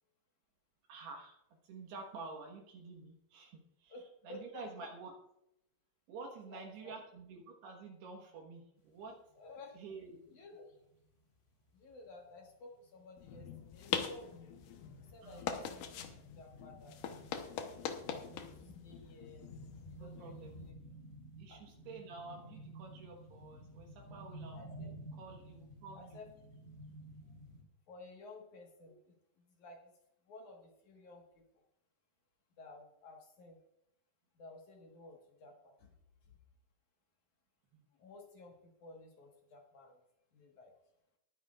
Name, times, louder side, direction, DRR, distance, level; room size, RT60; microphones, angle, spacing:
voice 1, 0.9-1.4 1.6-4.0 4.2-5.1 6.1-9.2 9.7-10.4 15.2-15.5 19.9-20.5 21.4-24.6 24.9-26.2, right 4 dB, 70° right, 1 dB, 3.1 m, -49 dB
voice 2, 3.9-4.9 6.5-6.9 9.4-9.8 10.3-10.6 11.7-14.5 15.1-17.0 18.0-18.5 18.8-19.5 19.9-20.7 21.5-21.6 24.5-24.9 25.9-26.3 27.9-29.9 30.3-31.4 32.6-33.6 34.4-35.9 36.2-36.3 37.9-40.0 40.3-40.7, left 2 dB, 60° left, 1 dB, 2.2 m, -54 dB
sound 1, 9.0-9.1 9.4-27.6, right 1 dB, 35° left, 1.7 m, -54 dB
sound 2, 13.2-20.7, left 8 dB, 90° left, 1.8 m, -43 dB
20.5 x 10.0 x 2.4 m, 0.80 s
omnidirectional pair, 5.3 m